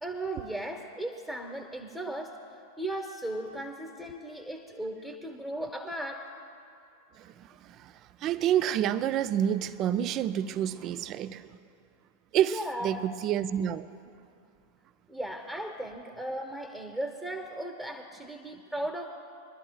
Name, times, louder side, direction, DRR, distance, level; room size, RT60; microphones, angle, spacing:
voice 1, 0.0-2.3 2.8-6.3 12.5-13.0 15.1-19.1, right 1 dB, 5° right, 1.0 m, -36 dB
voice 2, 8.2-11.5 12.3-13.9, right 10 dB, 35° right, 0.4 m, -28 dB
24.0 x 12.5 x 2.3 m
figure-of-eight pair, 90°, 0 cm